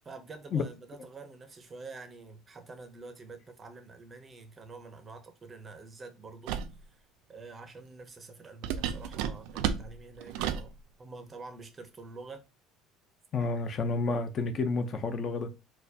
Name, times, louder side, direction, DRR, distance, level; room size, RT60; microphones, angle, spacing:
voice 1, 0.0-6.5 7.3-10.7 11.0-12.4 13.4-13.5, right 3 dB, 20° right, 0.5 m, -47 dB
sound 1, 6.5-6.8 8.6-10.7, right 9 dB, 75° right, 0.3 m, -32 dB
voice 2, 13.3-15.5, left 4 dB, 30° left, 0.4 m, -30 dB
4.3 x 2.2 x 2.6 m
cardioid pair, 160°, 0 cm